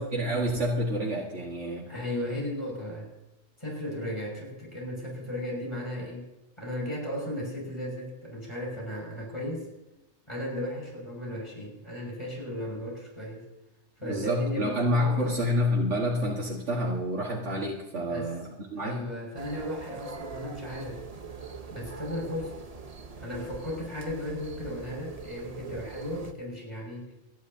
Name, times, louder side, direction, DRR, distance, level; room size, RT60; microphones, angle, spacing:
voice 1, 0.0-1.8 14.0-19.1, equal, 70° right, -3 dB, 1.9 m, -28 dB
voice 2, 1.9-3.1 3.6-6.3 6.6-9.7 10.3-13.5 14.0-15.4 18.1-18.3 18.7-21.0 21.7-22.6 23.2-27.1, left 1 dB, 25° left, -2 dB, 5.9 m, -35 dB
sound 1, 19.4-26.3, right 5 dB, 35° right, 1.0 m, -43 dB
29.0 x 10.5 x 2.7 m, 1.0 s
omnidirectional pair, 1.2 m